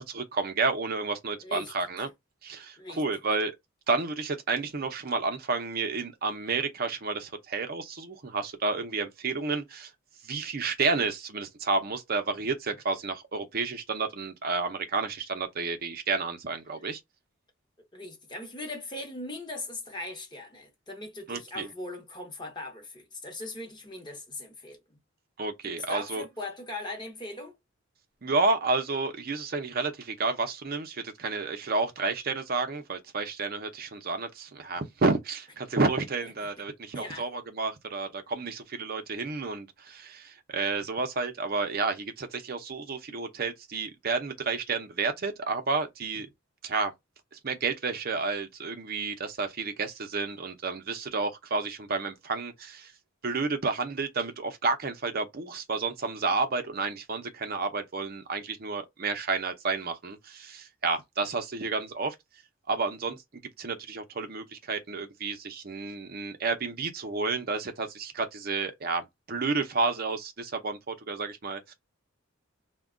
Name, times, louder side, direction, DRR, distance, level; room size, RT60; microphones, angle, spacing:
voice 1, 0.0-2.1 2.4-3.5 3.9-9.9 10.2-17.0 21.3-21.7 25.4-26.2 28.2-46.3 46.6-46.9 47.3-52.9 53.2-62.1 62.7-71.7, right 4 dB, 45° right, 0.6 m, -31 dB
voice 2, 1.4-1.7 2.8-3.0 17.8-25.0 25.6-27.6 36.4-36.5 36.9-37.3, left 2 dB, 20° left, 0.8 m, -39 dB
2.3 x 2.2 x 3.6 m
head